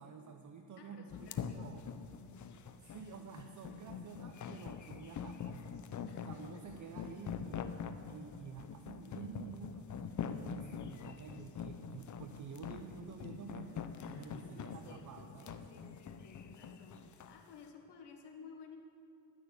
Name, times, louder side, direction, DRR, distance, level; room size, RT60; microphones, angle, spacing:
voice 1, 0.0-1.9 2.9-5.8 6.3-7.7 8.1-13.9 14.2-15.6, right 6 dB, 45° right, 5 dB, 0.7 m, -50 dB
voice 2, 0.8-1.7 2.2-2.6 6.0-6.6 14.0-18.8, left 5 dB, 65° left, 2 dB, 1.7 m, -56 dB
sound 1, 1.1-17.4, left 7 dB, 40° left, 0.7 m, -44 dB
12.0 x 6.3 x 8.1 m, 2.8 s
cardioid pair, 90°, 44 cm